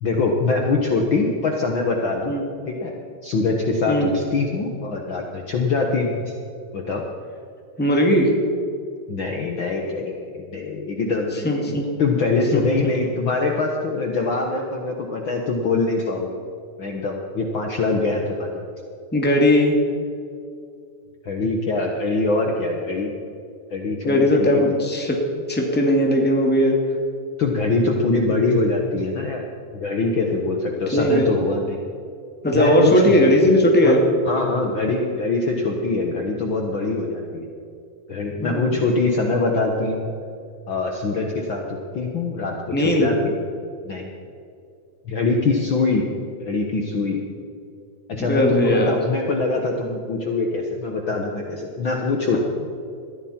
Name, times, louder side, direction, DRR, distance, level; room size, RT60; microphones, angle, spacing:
voice 1, 0.0-2.3 2.7-2.9 3.2-6.2 6.7-7.0 9.1-11.7 12.0-16.4 16.8-18.5 21.2-23.1 23.7-24.6 27.4-29.4 29.7-31.8 32.5-33.3 33.8-34.0 34.2-37.5 38.1-40.1 40.7-43.3 43.8-44.1 45.0-46.0 46.4-47.2 48.1-52.4, left 3 dB, 80° left, 1 dB, 1.1 m, -23 dB
voice 2, 7.8-8.3 11.4-11.8 12.5-12.6 19.1-19.8 24.0-25.2 25.5-26.8 30.9-31.3 32.4-34.0 38.4-38.6 42.7-43.1 48.2-49.0 52.3-52.4, equal, 5° left, 0 dB, 1.3 m, -18 dB
21.0 x 14.5 x 4.4 m, 2.5 s
omnidirectional pair, 4.2 m